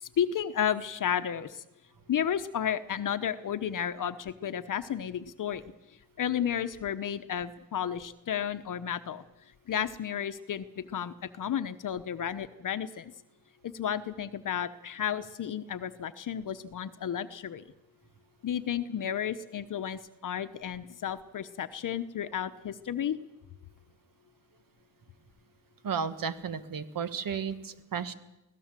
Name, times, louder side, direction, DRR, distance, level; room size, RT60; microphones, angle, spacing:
voice 1, 0.0-1.6 2.1-5.6 6.2-9.2 9.7-13.1 13.7-17.6 18.4-23.2, left 9 dB, 55° left, 11 dB, 0.9 m, -32 dB
voice 2, 25.8-28.1, right 6 dB, 60° right, 12 dB, 1.6 m, -33 dB
23.5 x 17.0 x 7.5 m, 0.96 s
cardioid pair, 110°, 39 cm